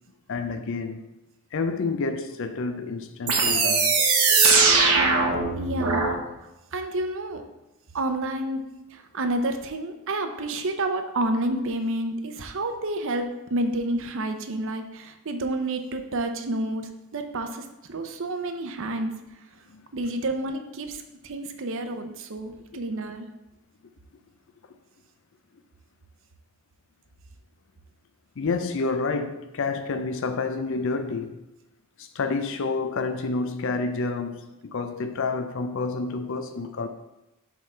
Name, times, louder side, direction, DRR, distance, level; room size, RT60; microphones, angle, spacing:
voice 1, 0.3-1.1 1.5-3.9 19.7-19.8 28.4-31.4 32.0-36.9, left 4 dB, 60° left, 0.5 m, -29 dB
sound 1, 3.3-6.1, right 4 dB, 85° right, 1.3 m, -20 dB
voice 2, 5.6-6.2 6.7-7.4 7.9-8.6 9.1-13.3 13.5-19.1 19.9-21.0 21.2-23.3, right 1 dB, 60° right, 0.6 m, -29 dB
5.8 x 3.7 x 5.6 m
head